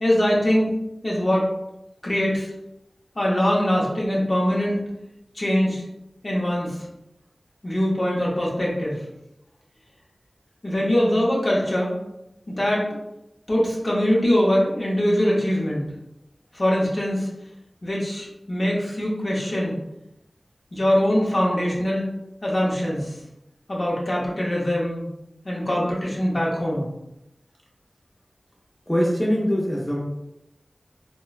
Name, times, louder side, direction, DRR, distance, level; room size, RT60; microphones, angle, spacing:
voice 1, 0.0-0.7 1.0-1.4 2.0-2.5 3.2-4.8 5.3-5.8 6.2-6.8 7.6-9.0 10.6-11.9 12.5-12.9 13.5-15.8 16.5-17.3 17.8-19.8 20.7-22.1 22.4-23.1 23.7-25.0 25.4-26.8, equal, 50° left, -4 dB, 0.7 m, -22 dB
voice 2, 28.9-30.0, equal, 10° left, -4 dB, 0.6 m, -22 dB
2.9 x 2.1 x 2.3 m, 0.86 s
wide cardioid pair, 60°, 0 cm